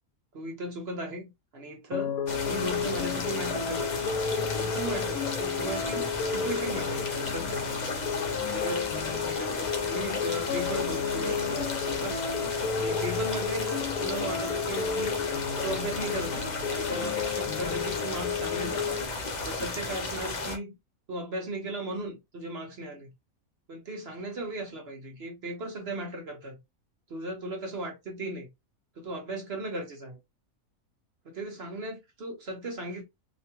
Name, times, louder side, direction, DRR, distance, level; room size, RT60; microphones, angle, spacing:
voice 1, 0.3-2.1 2.5-3.8 4.5-7.7 8.4-12.2 12.7-15.2 15.6-19.1 19.4-20.7 21.1-23.1 23.7-26.6 27.1-28.5 29.0-30.2 31.2-33.0, right 1 dB, 50° right, 0.9 m, -36 dB
sound 1, 1.9-19.0, left 6 dB, 85° left, 1.1 m, -32 dB
sound 2, 2.3-20.6, left 3 dB, 55° left, 0.5 m, -34 dB
2.9 x 2.2 x 2.9 m
omnidirectional pair, 1.6 m